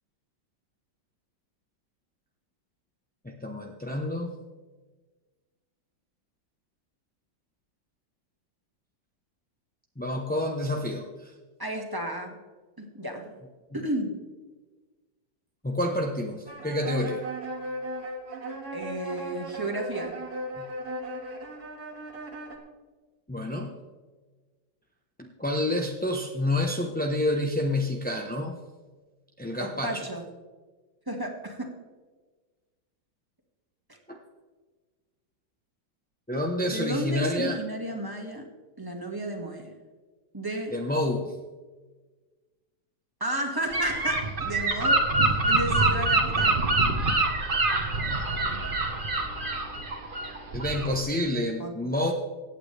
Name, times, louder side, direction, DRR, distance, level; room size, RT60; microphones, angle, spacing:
voice 1, 3.2-4.3 10.0-11.3 15.6-17.2 20.6-20.7 23.3-23.7 25.2-28.6 29.4-30.0 34.1-34.2 36.3-37.6 40.7-41.3 50.5-52.1, left 1 dB, 10° left, 0 dB, 0.6 m, -28 dB
voice 2, 11.6-12.4 12.8-13.3 13.7-14.2 18.7-20.1 29.6-30.2 31.1-31.7 36.7-38.5 38.8-39.7 40.3-40.7 43.2-45.1 45.5-46.6 51.6-51.8, right 1 dB, 10° right, 1 dB, 1.8 m, -32 dB
sound 1, 16.5-22.6, right 1 dB, 60° right, 2.4 m, -37 dB
Gull seagull / Wind, 43.7-51.0, right 2 dB, 30° right, 1.4 m, -25 dB
24.0 x 9.0 x 3.4 m, 1.3 s
omnidirectional pair, 1.9 m